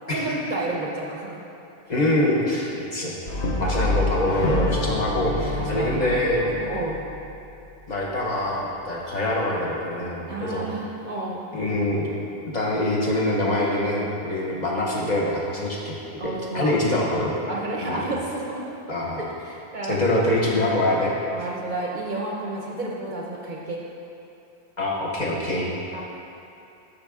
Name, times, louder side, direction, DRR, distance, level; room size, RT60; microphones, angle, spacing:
voice 1, 0.1-1.4 3.6-4.0 5.3-6.2 6.6-7.0 10.3-11.4 16.2-16.8 17.5-20.2 21.3-23.8 25.9-26.0, right 2 dB, 50° right, -3 dB, 0.7 m, -31 dB
voice 2, 1.9-3.1 3.6-6.6 7.9-10.7 11.5-12.1 12.5-17.3 17.8-18.1 18.9-19.2 19.9-21.2 24.8-25.8, left 1 dB, 45° left, -4 dB, 0.9 m, -24 dB
Brass instrument, 3.3-7.5, left 1 dB, 75° left, 1.0 m, -27 dB
6.5 x 5.4 x 3.5 m, 2.7 s
omnidirectional pair, 1.1 m